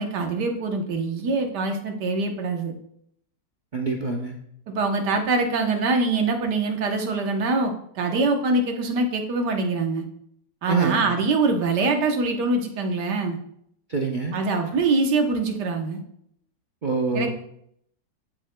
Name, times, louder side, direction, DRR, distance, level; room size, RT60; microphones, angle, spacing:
voice 1, 0.0-2.7 4.7-10.0 10.6-13.4 14.3-16.0 17.1-17.3, right 3 dB, 70° right, 4 dB, 1.6 m, -24 dB
voice 2, 3.7-4.3 10.7-11.0 13.9-14.4 16.8-17.3, right 4 dB, 45° right, 0 dB, 0.6 m, -25 dB
14.5 x 6.4 x 2.2 m, 0.71 s
omnidirectional pair, 1.9 m